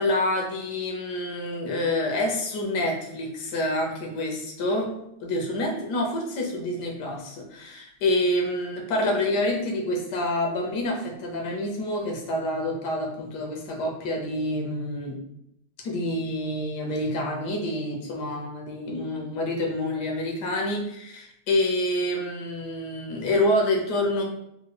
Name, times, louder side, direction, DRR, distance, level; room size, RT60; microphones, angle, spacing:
voice 1, 0.0-4.9 5.2-15.2 15.8-24.2, left 1 dB, 85° left, 0 dB, 1.4 m, -27 dB
3.7 x 2.2 x 3.3 m, 0.80 s
omnidirectional pair, 1.7 m